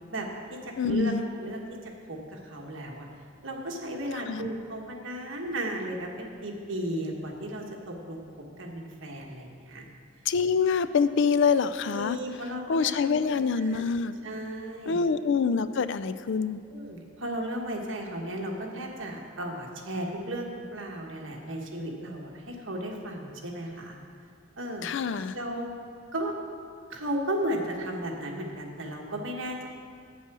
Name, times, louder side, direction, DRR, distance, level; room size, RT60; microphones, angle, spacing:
voice 1, 0.1-3.1 3.4-8.2 8.6-9.8 11.9-13.8 14.2-15.0 16.7-24.0 24.6-24.9 25.3-25.7 26.1-26.3 26.9-29.7, right 1 dB, 70° right, 0 dB, 1.4 m, -35 dB
voice 2, 0.8-1.2 4.3-4.5 10.3-12.2 12.7-14.1 14.9-16.6 24.8-25.4, left 5 dB, 60° left, 13 dB, 0.4 m, -25 dB
8.8 x 8.3 x 6.1 m, 2.3 s
head